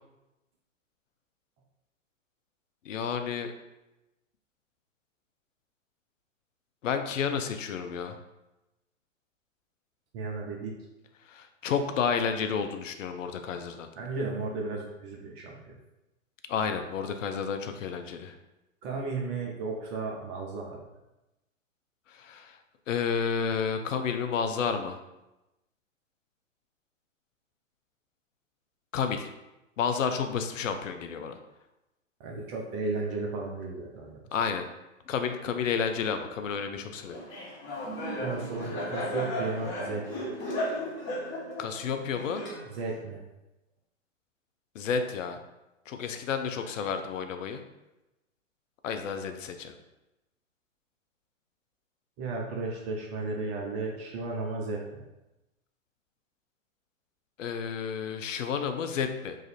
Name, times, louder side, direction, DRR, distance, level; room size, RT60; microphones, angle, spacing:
voice 1, 2.8-3.5 6.8-8.2 11.3-13.9 16.5-18.3 22.1-22.6 22.9-25.0 28.9-29.3 29.8-31.4 34.3-34.6 35.1-37.2 41.6-42.4 44.7-45.4 45.9-47.6 48.8-49.8 57.4-59.4, left 6 dB, 70° left, 7 dB, 0.6 m, -31 dB
voice 2, 10.1-10.7 14.0-15.8 18.8-20.9 32.2-34.2 38.2-40.3 42.7-43.2 52.2-55.0, right 3 dB, 25° right, 0 dB, 0.4 m, -34 dB
Laughter, 37.1-43.0, equal, 30° left, 1.2 m, -35 dB
3.1 x 2.5 x 4.0 m, 0.98 s
hypercardioid pair, 115°, 39 cm